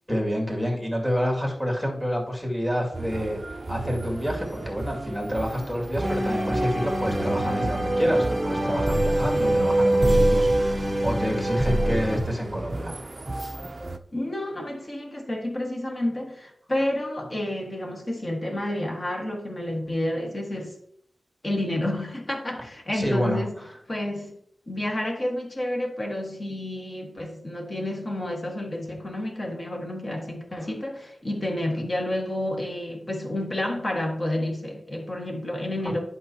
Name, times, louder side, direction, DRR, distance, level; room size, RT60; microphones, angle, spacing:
voice 1, 0.1-3.4 3.7-10.7 11.0-13.0 22.9-23.4, equal, 5° left, -2 dB, 2.3 m, -28 dB
sound 1, 2.9-14.0, right 2 dB, 30° right, 0.5 m, -35 dB
sound 2, 6.0-12.2, right 1 dB, 15° right, 0.9 m, -23 dB
voice 2, 14.1-20.8 21.4-23.5 23.9-24.3 24.7-36.0, left 1 dB, 30° left, 2 dB, 1.6 m, -30 dB
11.0 x 5.5 x 2.8 m, 0.69 s
wide cardioid pair, 125°, 0 cm